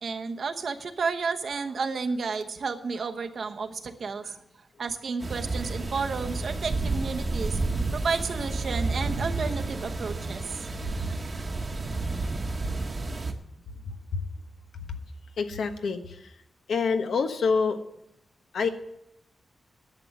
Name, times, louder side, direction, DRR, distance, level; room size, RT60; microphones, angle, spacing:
voice 1, 0.0-4.4 4.8-7.6 7.9-10.4, right 4 dB, 60° right, 6 dB, 1.0 m, -31 dB
sound 1, 5.2-13.3, right 3 dB, 35° right, 1.1 m, -30 dB
voice 2, 15.4-16.2 16.7-17.8 18.5-18.7, left 5 dB, 85° left, 6 dB, 1.1 m, -26 dB
11.0 x 7.7 x 7.2 m, 0.82 s
wide cardioid pair, 135°, 0 cm